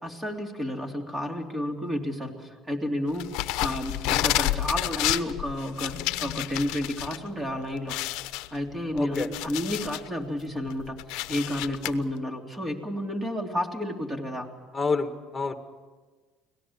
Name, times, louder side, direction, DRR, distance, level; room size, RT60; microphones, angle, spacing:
voice 1, 0.0-3.3 3.6-7.9 8.5-11.0 11.3-14.5, left 1 dB, 15° right, 3 dB, 3.3 m, -31 dB
sound 1, 3.2-7.2 7.5-7.6 7.9-10.1 10.5-11.9, left 17 dB, 80° left, 0.8 m, -30 dB
voice 2, 8.9-9.3 14.7-15.6, left 4 dB, 20° left, 7 dB, 2.0 m, -28 dB
25.0 x 18.0 x 7.4 m, 1.4 s
supercardioid pair, 100°, 0 cm